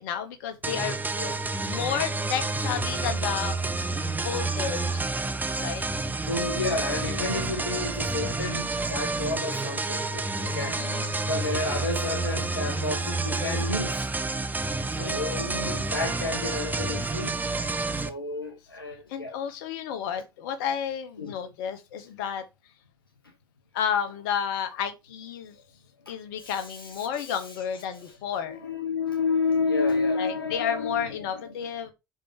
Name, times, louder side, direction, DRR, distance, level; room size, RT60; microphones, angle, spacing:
voice 1, 0.0-1.0 1.4-3.6 4.2-5.1 5.6-5.9 10.4-11.3 15.0-15.4 19.1-22.4 23.7-25.6 26.1-28.6 30.2-31.9, left 8 dB, 65° left, 1.4 m, -32 dB
sound 1, 0.6-18.1, right 3 dB, 15° right, 1.0 m, -29 dB
voice 2, 6.2-10.8 11.2-14.5 14.9-19.3 21.2-21.3 26.0-27.6 27.9-28.1 28.5-31.5, left 3 dB, 85° left, 0.9 m, -31 dB
5.9 x 5.2 x 4.8 m
figure-of-eight pair, 55°, 12 cm